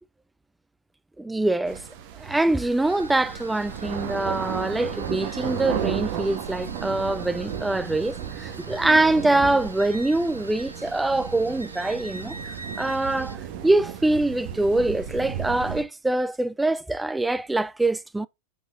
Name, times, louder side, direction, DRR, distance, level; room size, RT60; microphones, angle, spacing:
voice 1, 1.2-1.8 2.1-18.3, right 2 dB, 5° right, 0.4 m, -24 dB
sound 1, 1.7-15.8, right 9 dB, 45° right, 1.5 m, -34 dB
sound 2, 2.8-13.4, right 2 dB, 85° right, 0.9 m, -45 dB
7.5 x 5.5 x 2.5 m
figure-of-eight pair, 90°, 0 cm